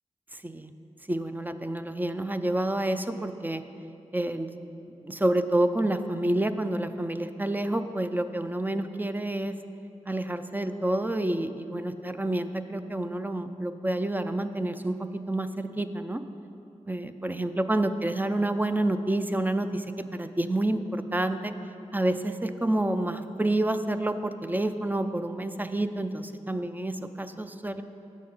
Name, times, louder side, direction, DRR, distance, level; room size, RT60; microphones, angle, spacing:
voice 1, 0.3-0.7 1.1-3.6 4.1-4.5 5.0-9.6 10.1-16.2 16.9-21.5 21.9-27.8, right 1 dB, 15° right, 9 dB, 0.5 m, -28 dB
8.7 x 6.4 x 5.4 m, 2.7 s
cardioid pair, 50°, 13 cm